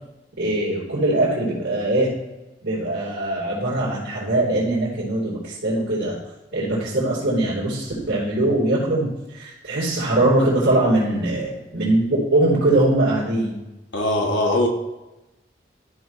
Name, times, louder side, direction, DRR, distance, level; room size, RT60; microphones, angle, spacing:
voice 1, 0.4-2.1 2.6-6.2 6.5-13.6, right 1 dB, 75° right, -10 dB, 3.4 m, -21 dB
voice 2, 13.9-14.7, left 1 dB, 85° left, 1 dB, 1.4 m, -20 dB
13.5 x 5.6 x 3.1 m, 1.0 s
head